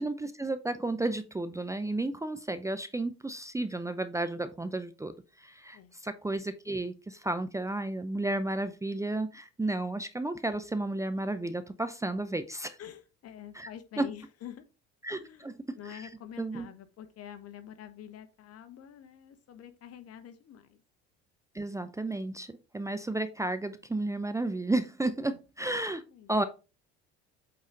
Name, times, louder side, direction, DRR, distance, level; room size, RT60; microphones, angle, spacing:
voice 1, 0.0-12.8 13.6-13.7 14.0-14.1 15.0-16.0 16.4-16.7 21.5-26.0 26.3-26.4, right 2 dB, 10° right, 0.6 m, -32 dB
voice 2, 12.8-14.6 15.1-15.5 15.7-20.8 25.3-25.4 26.1-26.3, left 10 dB, 50° left, 1.2 m, -47 dB
8.3 x 4.0 x 3.9 m
hypercardioid pair, 70°, 32 cm